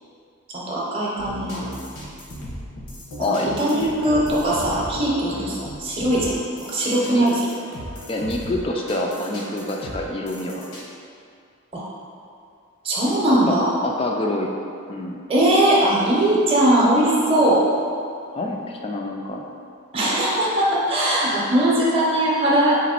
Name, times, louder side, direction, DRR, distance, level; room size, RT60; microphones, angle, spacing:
voice 1, 0.5-1.7 3.6-6.3 6.7-7.5 11.7-11.8 12.8-13.7 15.3-17.6 19.9-22.8, right 1 dB, 25° right, -5 dB, 0.7 m, -20 dB
sound 1, 1.2-10.8, equal, 80° left, 1.2 m, -37 dB
voice 2, 3.2-3.9 5.3-5.6 7.1-7.3 8.1-10.6 13.3-14.5 14.9-15.2 18.3-19.4, left 1 dB, 25° left, 1 dB, 0.3 m, -27 dB
4.0 x 3.0 x 4.3 m, 2.4 s
head